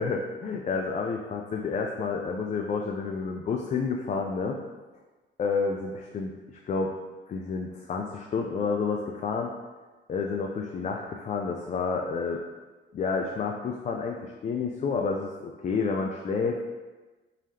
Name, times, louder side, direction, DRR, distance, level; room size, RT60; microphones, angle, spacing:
voice 1, 0.0-4.6 5.4-6.3 6.6-6.9 7.3-9.5 10.1-12.4 12.9-16.6, left 4 dB, 40° left, 2 dB, 0.4 m, -29 dB
3.8 x 3.1 x 2.8 m, 1.2 s
cardioid pair, 90°, 20 cm